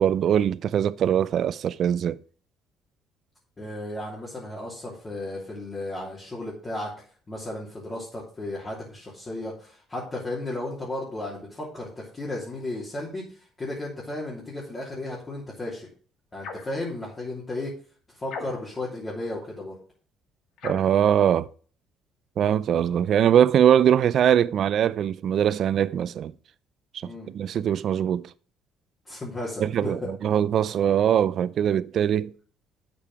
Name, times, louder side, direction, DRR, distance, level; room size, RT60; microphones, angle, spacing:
voice 1, 0.0-2.2 20.6-21.5 22.4-26.3 27.0-28.3 29.6-32.3, right 9 dB, 50° right, 0.5 m, -22 dB
voice 2, 3.6-6.9 7.3-15.9 16.3-17.7 18.1-19.8 27.0-27.3 29.0-30.1, left 2 dB, 20° left, 3.0 m, -34 dB
sound 1, 16.4-16.8 18.3-18.8 20.6-21.0, left 4 dB, 65° left, 2.0 m, -38 dB
8.6 x 6.9 x 4.8 m
cardioid pair, 130°, 0 cm